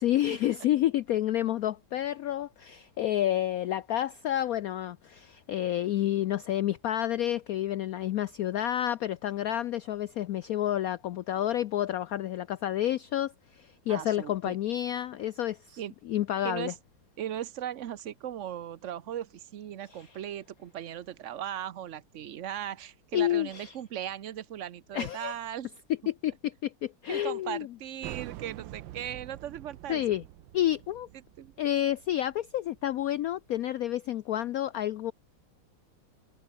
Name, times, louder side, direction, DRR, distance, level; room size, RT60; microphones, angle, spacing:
voice 1, 0.0-15.6 16.1-16.7 19.9-20.1 23.1-23.7 24.9-25.3 26.1-27.7 29.9-30.2 30.5-31.1 31.6-35.1, left 12 dB, 90° left, 0.7 m, -29 dB
voice 2, 13.9-14.6 15.7-15.9 16.4-16.7 17.2-25.7 27.1-30.0 31.4-31.5, right 10 dB, 55° right, 0.9 m, -38 dB
sound 1, 28.0-33.3, right 15 dB, 75° right, 1.4 m, -46 dB
omnidirectional pair, 2.1 m